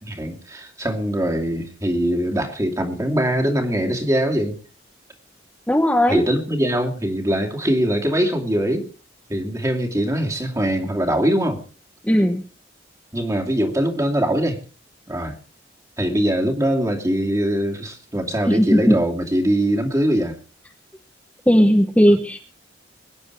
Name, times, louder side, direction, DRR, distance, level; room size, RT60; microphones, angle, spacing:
voice 1, 0.0-4.6 6.1-8.9 9.3-11.6 13.1-14.6 15.1-15.4 16.0-20.4, right 1 dB, 20° right, 2 dB, 2.6 m, -22 dB
voice 2, 5.7-6.2 12.0-12.4 18.5-19.0 21.5-22.4, equal, 10° left, 3 dB, 1.2 m, -16 dB
23.5 x 10.0 x 4.7 m, 0.36 s
head